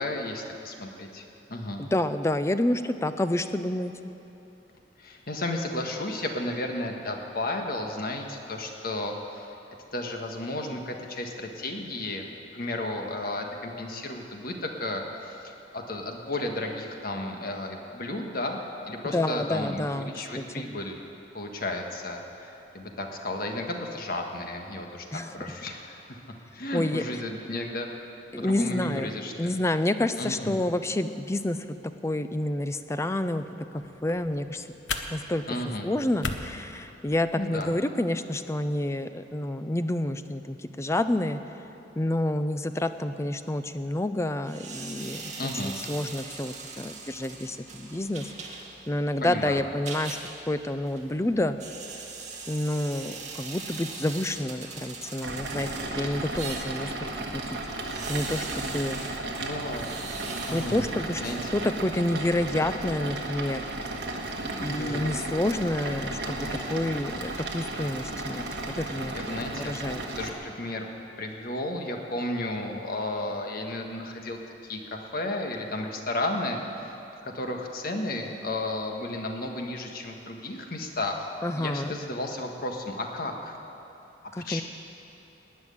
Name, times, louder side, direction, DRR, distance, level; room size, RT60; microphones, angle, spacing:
voice 1, 0.0-1.8 5.0-9.5 9.9-12.2 12.5-18.6 18.9-21.0 21.3-26.2 26.5-27.9 28.4-29.5 30.2-30.6 35.4-35.9 37.4-37.7 45.4-45.8 49.2-49.6 59.0-59.9 60.5-60.9 61.2-61.5 64.5-65.1 68.8-69.8 70.2-70.9 71.2-76.9 77.2-83.6 84.4-84.6, left 1 dB, 55° left, 2 dB, 1.5 m, -33 dB
voice 2, 1.8-3.9 19.1-20.7 25.1-25.3 26.7-27.0 28.3-29.1 29.4-31.8 32.0-33.4 34.0-34.6 35.1-35.4 35.8-41.4 42.0-48.3 48.9-50.2 50.5-51.6 52.5-57.4 58.1-59.0 60.5-61.2 61.5-63.6 64.6-68.4 68.7-69.1 69.6-70.0 81.4-82.0 84.3-84.6, left 1 dB, 15° left, 10 dB, 0.5 m, -29 dB
sound 1, 33.8-37.7, left 4 dB, 90° left, 0.9 m, -38 dB
sound 2, 44.4-62.0, right 4 dB, 40° right, 1.9 m, -41 dB
sound 3, 55.2-70.3, right 2 dB, 65° right, 1.5 m, -34 dB
19.0 x 6.3 x 9.8 m, 3.0 s
head